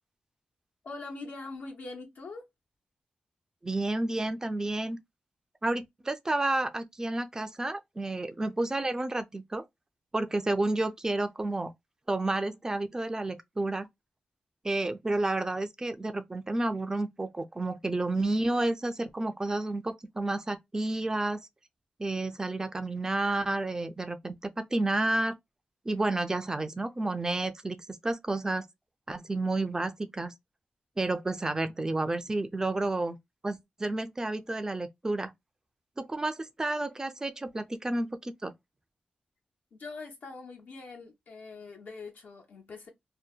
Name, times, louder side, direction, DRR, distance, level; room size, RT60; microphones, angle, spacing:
voice 1, 0.8-2.4 31.6-31.9 39.7-42.9, left 3 dB, 80° left, 1.2 m, -43 dB
voice 2, 3.6-5.0 5.6-9.6 10.1-11.7 12.1-13.9 14.6-21.5 22.0-25.3 25.9-28.7 29.1-30.3 31.0-33.2 33.4-35.3 36.0-38.5, right 2 dB, 20° right, 0.3 m, -30 dB
2.7 x 2.1 x 2.2 m
wide cardioid pair, 115°, 3 cm